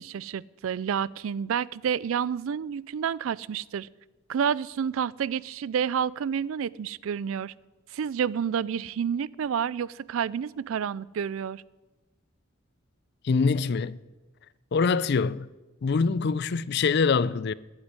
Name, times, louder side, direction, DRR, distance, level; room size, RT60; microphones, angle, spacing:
voice 1, 0.0-3.9 4.3-7.5 7.9-11.6, right 7 dB, 75° right, 0.4 m, -29 dB
voice 2, 13.2-14.0 14.7-15.5 15.8-17.5, left 5 dB, 50° left, 0.4 m, -24 dB
11.5 x 8.2 x 9.6 m
head